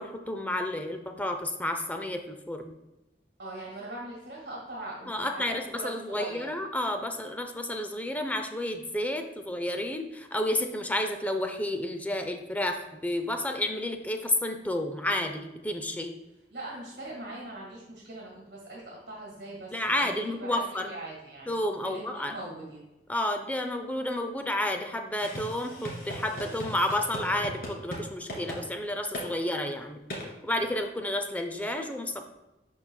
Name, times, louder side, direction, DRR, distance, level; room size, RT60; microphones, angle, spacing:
voice 1, 0.0-2.7 5.1-16.1 19.7-20.9 21.5-22.3 23.1-30.0 30.4-32.3, left 1 dB, 10° left, 6 dB, 0.5 m, -31 dB
voice 2, 3.4-6.5 16.5-21.6 21.8-22.0 22.3-22.8, right 2 dB, 70° right, -3 dB, 1.8 m, -41 dB
sound 1, 25.1-28.0 28.3-28.6 29.1-29.3 30.1-30.3, equal, 55° left, 1.9 m, -38 dB
11.5 x 4.0 x 2.3 m, 0.98 s
head